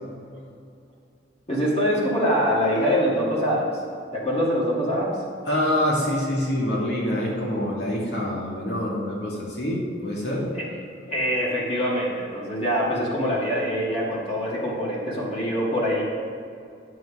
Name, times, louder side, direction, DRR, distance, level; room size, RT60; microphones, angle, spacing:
voice 1, 1.5-3.7 4.1-5.2 10.5-10.7 11.1-16.0, equal, 35° left, -5 dB, 2.1 m, -24 dB
voice 2, 5.5-10.5, left 1 dB, 65° left, -4 dB, 2.5 m, -26 dB
9.4 x 7.9 x 5.0 m, 2.5 s
head